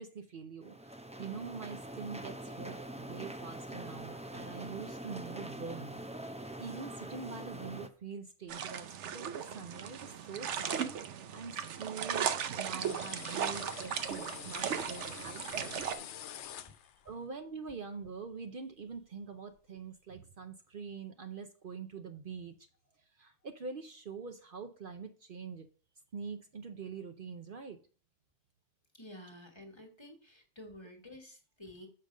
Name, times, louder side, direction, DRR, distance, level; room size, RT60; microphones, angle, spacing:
voice 1, 0.0-10.8 11.3-16.8 17.0-22.5 23.1-25.7 26.1-27.8, right 5 dB, 55° right, 6 dB, 0.8 m, -45 dB
sound 1, 0.6-7.9, right 1 dB, 10° right, 0.3 m, -44 dB
sound 2, 8.5-15.9, right 8 dB, 90° right, 1.0 m, -37 dB
sound 3, 12.8-17.1, left 10 dB, 85° left, 0.9 m, -47 dB
voice 2, 28.9-31.9, left 1 dB, 25° left, 4 dB, 1.4 m, -51 dB
6.6 x 5.2 x 6.4 m, 0.40 s
omnidirectional pair, 1.2 m